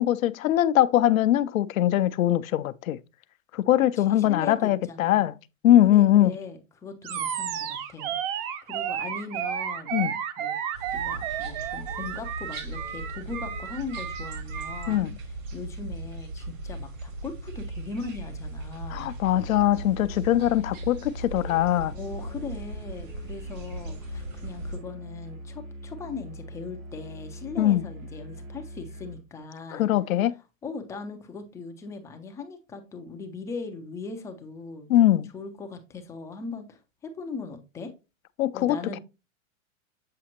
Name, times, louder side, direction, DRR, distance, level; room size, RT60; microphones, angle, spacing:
voice 1, 0.0-3.0 3.5-5.3 5.6-6.3 9.9-10.1 14.9-15.1 18.9-21.9 27.6-27.9 29.7-30.4 34.9-35.3 38.4-39.0, left 13 dB, 85° left, 0.6 m, -22 dB
voice 2, 4.0-5.2 5.8-9.9 10.4-10.6 10.9-15.1 15.5-19.1 21.9-29.9 30.6-34.9 35.3-37.9 38.5-39.0, left 4 dB, 10° left, 0.3 m, -39 dB
Animal, 7.0-15.0, right 9 dB, 45° right, 0.8 m, -32 dB
sound 1, 10.7-24.8, right 2 dB, 75° right, 3.3 m, -38 dB
Musical instrument, 19.4-29.3, equal, 90° right, 2.7 m, -42 dB
7.5 x 5.0 x 2.9 m
hypercardioid pair, 125°, 40 cm